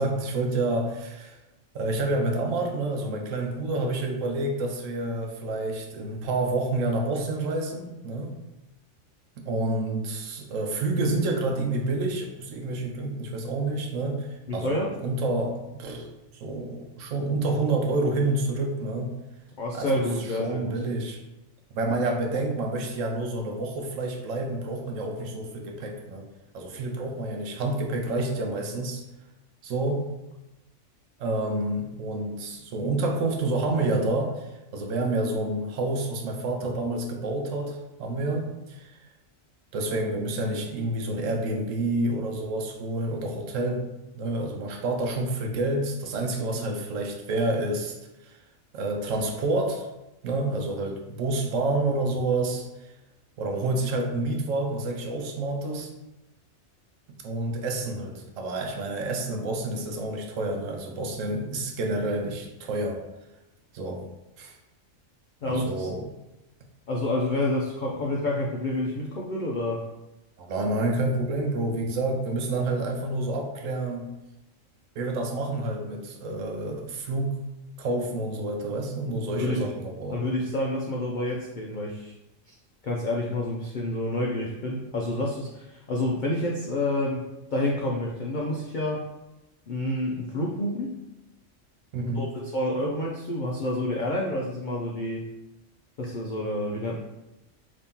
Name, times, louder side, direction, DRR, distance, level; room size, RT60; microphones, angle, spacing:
voice 1, 0.0-1.4 1.7-8.3 9.4-19.2 19.7-20.0 20.4-21.2 21.7-26.2 26.5-29.0 29.6-30.1 31.2-34.4 34.7-39.0 39.7-43.9 44.2-48.0 48.2-48.3 48.7-49.9 50.2-52.9 53.4-55.9 57.2-63.0 63.7-64.0 64.4-64.6 65.4-66.1 70.4-74.1 75.0-77.4 77.8-80.2 91.9-92.3, right 2 dB, 75° right, 2 dB, 1.0 m, -28 dB
voice 2, 14.5-14.9 19.6-20.8 65.4-65.9 66.9-69.9 79.4-79.7 80.1-82.1 82.5-82.6 82.8-89.1 89.7-90.9 92.1-95.3 96.0-97.0, left 1 dB, 90° left, -2 dB, 0.4 m, -28 dB
2.9 x 2.7 x 3.5 m, 0.97 s
omnidirectional pair, 1.4 m